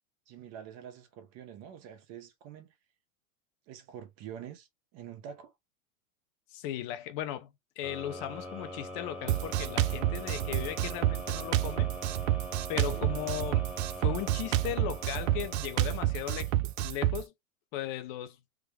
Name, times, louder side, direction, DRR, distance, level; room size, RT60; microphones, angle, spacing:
voice 1, 0.3-2.7 3.7-5.5 12.7-13.1, right 9 dB, 35° right, 0.9 m, -46 dB
voice 2, 6.5-7.5 7.8-11.9 12.7-16.5 16.8-17.3 17.7-18.4, left 12 dB, 40° left, 0.7 m, -37 dB
sound 1, 7.8-16.7, equal, ahead, 1.0 m, -43 dB
Drum kit, 9.3-17.2, right 14 dB, 60° right, 0.5 m, -29 dB
3.6 x 2.2 x 3.4 m
hypercardioid pair, 125°, 44 cm